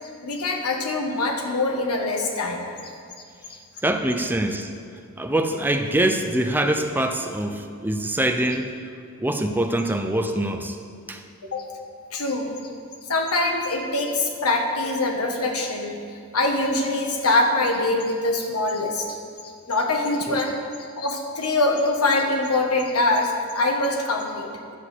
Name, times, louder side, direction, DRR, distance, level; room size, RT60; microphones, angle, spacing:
voice 1, 0.2-2.9 3.5-3.6 11.5-11.6 12.1-12.5 13.1-16.0 16.3-19.2 19.7-20.6 21.0-24.5, left 2 dB, 80° left, 2 dB, 1.5 m, -23 dB
voice 2, 3.8-4.7 5.2-8.9 9.2-10.8 11.1-11.2 20.3-20.4, right 1 dB, 10° right, 5 dB, 0.6 m, -24 dB
11.0 x 6.4 x 7.6 m, 2.3 s
head